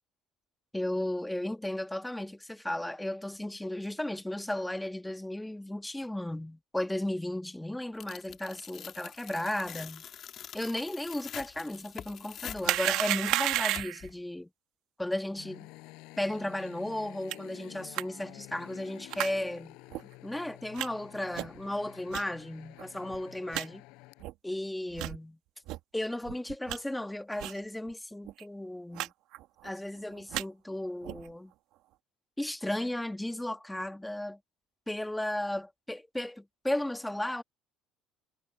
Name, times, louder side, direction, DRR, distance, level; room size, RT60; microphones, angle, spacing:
voice 1, 0.7-10.0 10.5-14.5 15.0-15.7 16.2-19.8 20.2-23.8 24.4-25.4 25.9-29.1 29.6-31.5 32.4-34.4 34.9-37.4, left 1 dB, 5° left, 1.7 m, -35 dB
Tearing, 8.0-14.1, left 9 dB, 50° left, 2.9 m, -45 dB
sound 1, 12.6-14.1 17.3-17.4 17.9-18.0 19.1-19.3 19.9-20.0 20.8-20.9 21.3-21.6 22.1-22.2 22.8-22.9 23.1-23.2 23.5-23.7 24.2-24.3 24.9-25.2 25.7-25.8 26.2-26.8 27.4-27.6 27.9-28.0 28.2-28.4 28.9-29.1 29.3-29.7 30.1-30.4 31.0-31.3, right 16 dB, 75° right, 2.0 m, -32 dB
sound 2, 15.4-24.2, left 23 dB, 80° left, 7.5 m, -50 dB
cardioid pair, 115°, 0 cm